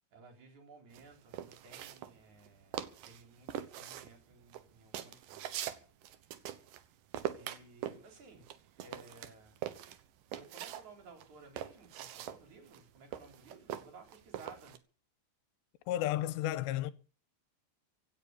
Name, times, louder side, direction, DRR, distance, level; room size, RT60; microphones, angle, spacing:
voice 1, 0.1-5.6 7.3-8.5 8.8-9.6 10.3-14.8, right 3 dB, 45° right, 4.7 m, -56 dB
sound 1, 0.9-2.5 2.7-3.2 3.5-6.9 7.1-10.9 11.2-14.8, right 11 dB, 70° right, 2.2 m, -42 dB
voice 2, 15.9-16.9, left 13 dB, 80° left, 3.0 m, -32 dB
16.5 x 7.7 x 8.8 m
omnidirectional pair, 4.9 m